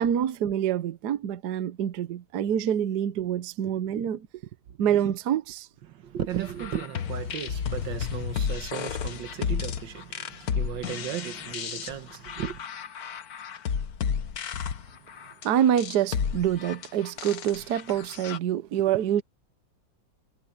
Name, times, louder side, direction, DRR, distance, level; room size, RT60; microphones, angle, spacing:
voice 1, 0.0-4.4 4.8-5.7 15.4-19.2, right 10 dB, 65° right, 1.3 m, -26 dB
voice 2, 5.9-12.7, right 10 dB, 80° right, 1.8 m, -35 dB
sound 1, 6.4-18.4, left 7 dB, 55° left, 1.5 m, -32 dB
omnidirectional pair, 2.0 m